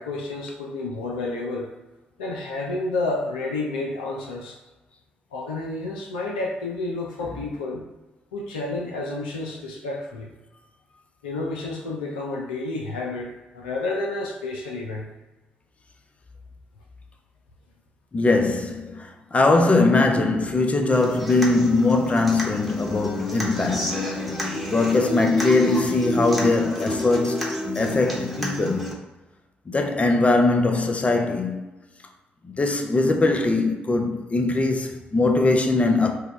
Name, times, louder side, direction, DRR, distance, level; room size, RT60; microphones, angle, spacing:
voice 1, 0.0-1.7 2.2-4.6 5.3-7.8 8.3-10.3 11.2-15.1, left 2 dB, 80° left, 0.5 m, -30 dB
voice 2, 18.1-24.2 24.7-28.9 29.7-31.7 32.4-36.2, left 3 dB, 25° left, 0.6 m, -21 dB
Human voice / Acoustic guitar, 20.9-28.9, left 1 dB, ahead, 1.1 m, -29 dB
4.6 x 2.2 x 3.0 m
figure-of-eight pair, 40°, 5 cm